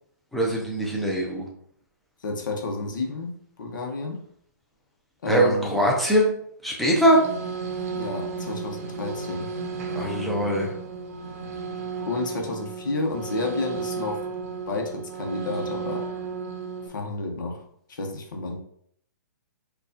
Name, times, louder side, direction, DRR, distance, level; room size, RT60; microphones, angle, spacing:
voice 1, 0.3-1.5 5.3-6.3 6.6-7.2 9.9-10.7, right 1 dB, ahead, -2 dB, 0.5 m, -22 dB
voice 2, 2.2-4.2 5.2-5.8 7.9-9.5 12.1-14.3 14.7-16.1 16.9-18.6, left 3 dB, 80° left, 2 dB, 0.9 m, -31 dB
sound 1, 6.9-16.9, right 5 dB, 50° right, 0.7 m, -33 dB
4.5 x 2.4 x 2.7 m, 0.65 s
hypercardioid pair, 165°, 10 cm